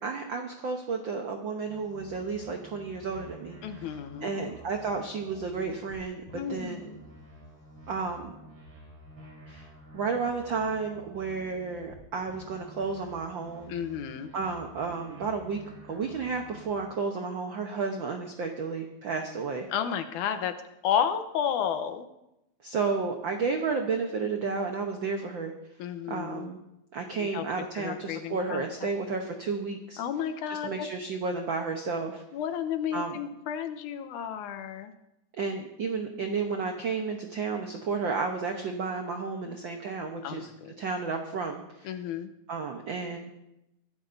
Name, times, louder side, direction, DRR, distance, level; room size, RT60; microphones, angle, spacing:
voice 1, 0.0-3.6 4.2-6.9 7.9-8.3 9.5-9.7 9.9-13.7 14.3-15.6 15.9-19.7 22.6-25.5 26.1-26.6 26.9-30.0 30.5-32.2 32.9-33.2 35.4-40.5 40.8-41.9 42.5-43.3, right 4 dB, 80° right, 3 dB, 1.0 m, -32 dB
sound 1, 1.7-6.0 6.3-12.0 12.3-16.9, equal, 50° right, 5.1 m, -50 dB
voice 2, 3.6-4.4 6.3-7.0 13.7-14.3 19.7-20.5 20.8-22.1 25.8-26.5 27.2-27.4 27.7-28.9 30.0-30.9 32.3-34.9 39.5-39.6 40.2-40.7 41.8-42.3, left 8 dB, 80° left, 8 dB, 2.3 m, -32 dB
23.5 x 12.5 x 2.6 m, 0.88 s
omnidirectional pair, 3.5 m